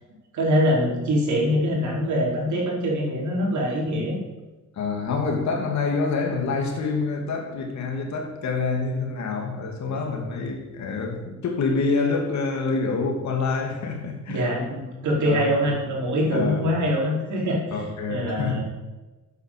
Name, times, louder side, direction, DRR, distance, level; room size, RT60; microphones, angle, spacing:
voice 1, 0.3-4.2 14.3-17.6 18.1-18.6, equal, 75° right, -2 dB, 4.1 m, -23 dB
voice 2, 4.7-14.7 15.2-15.7 16.3-16.7 17.7-18.6, left 4 dB, 65° left, 3 dB, 2.5 m, -27 dB
9.0 x 8.1 x 6.8 m, 1.2 s
cardioid pair, 90°, 30 cm